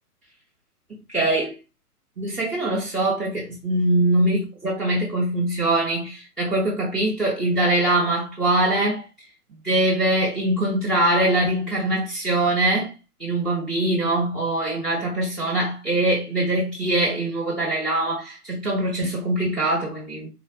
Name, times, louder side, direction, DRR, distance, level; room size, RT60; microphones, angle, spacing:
voice 1, 1.1-1.5 2.2-9.0 9.6-12.9 13.2-20.3, right 1 dB, ahead, 0.5 m, -23 dB
4.0 x 2.0 x 4.0 m
figure-of-eight pair, 125°, 46 cm